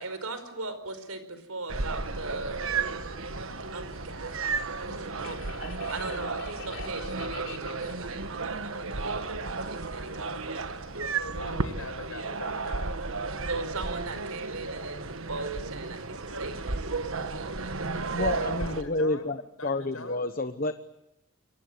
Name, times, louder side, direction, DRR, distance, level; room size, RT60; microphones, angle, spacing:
voice 1, 0.0-2.6 3.7-4.4 4.8-5.4 5.7-11.2 13.5-15.0 15.3-18.8, right 3 dB, 85° right, 11 dB, 4.9 m, -39 dB
Subway metro underground, 1.7-13.3, left 4 dB, 55° left, 4.0 m, -49 dB
sound 1, 1.7-18.8, right 4 dB, 65° right, 1.5 m, -33 dB
voice 2, 10.3-10.6 11.2-12.9 18.3-19.3 19.6-20.3, left 2 dB, 75° left, 7 dB, 6.6 m, -41 dB
voice 3, 18.1-19.4 19.6-20.7, left 2 dB, 40° left, 10 dB, 1.0 m, -29 dB
29.5 x 23.5 x 8.0 m, 0.87 s
head